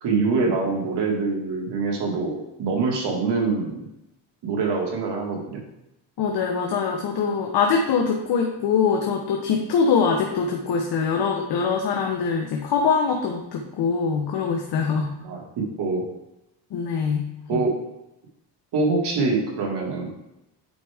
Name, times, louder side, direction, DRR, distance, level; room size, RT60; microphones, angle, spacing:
voice 1, 0.0-3.7 4.4-5.6 15.2-15.4 15.8-16.0 17.5-17.7 18.7-20.1, right 4 dB, 85° right, -1 dB, 1.9 m, -24 dB
voice 2, 6.2-15.1 16.7-17.6, left 5 dB, 75° left, 1 dB, 1.0 m, -23 dB
9.2 x 4.6 x 3.5 m, 0.88 s
cardioid pair, 135°, 41 cm